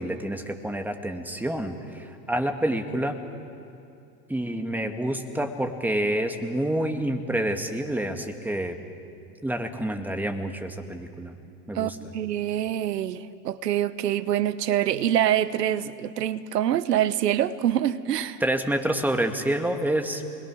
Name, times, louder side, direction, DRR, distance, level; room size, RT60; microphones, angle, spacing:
voice 1, 0.0-3.2 4.3-8.8 9.4-11.3 11.7-12.0 18.4-20.2, right 1 dB, 5° right, 1.9 m, -28 dB
voice 2, 11.7-18.4, right 11 dB, 85° right, 1.1 m, -25 dB
29.0 x 21.0 x 6.2 m
hypercardioid pair, 110°, 48 cm